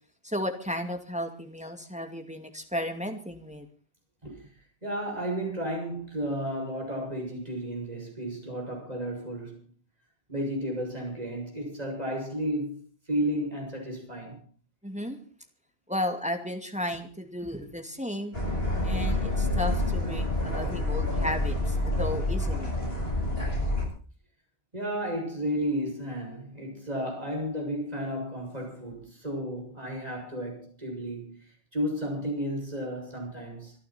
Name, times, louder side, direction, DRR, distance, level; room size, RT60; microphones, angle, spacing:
voice 1, 0.2-3.7 14.8-15.2 15.9-18.4 18.8-22.7, left 1 dB, 5° right, 2.3 m, -34 dB
voice 2, 4.8-9.6 10.3-12.8 13.1-14.4 24.7-31.4 31.7-33.7, equal, 40° right, 7.2 m, -33 dB
sound 1, 18.3-23.8, left 1 dB, 75° left, 8.4 m, -28 dB
26.0 x 11.5 x 4.4 m
omnidirectional pair, 1.0 m